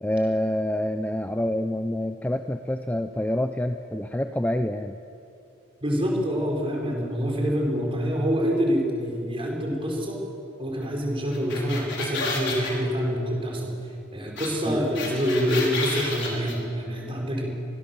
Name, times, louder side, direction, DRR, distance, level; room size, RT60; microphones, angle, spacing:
voice 1, 0.0-5.0 14.6-14.8, left 1 dB, 10° left, 7 dB, 0.6 m, -27 dB
voice 2, 5.8-10.2 10.6-13.7 14.1-17.5, equal, 25° right, -1 dB, 5.0 m, -26 dB
sound 1, 11.3-12.7 14.4-14.5 14.7-16.5, left 4 dB, 60° left, 5.2 m, -30 dB
25.0 x 20.0 x 7.2 m, 2.7 s
head